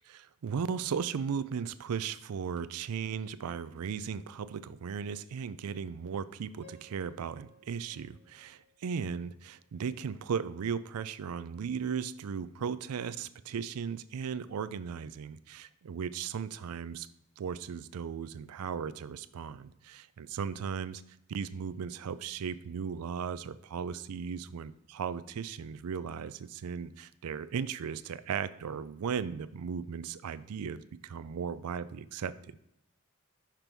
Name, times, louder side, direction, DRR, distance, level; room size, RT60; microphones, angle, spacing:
voice 1, 0.1-17.1 17.4-21.0 21.3-32.6, right 6 dB, 85° right, 15 dB, 0.4 m, -36 dB
Piano, 6.6-9.6, left 2 dB, 45° left, 2.1 m, -60 dB
5.9 x 5.2 x 4.5 m, 0.81 s
head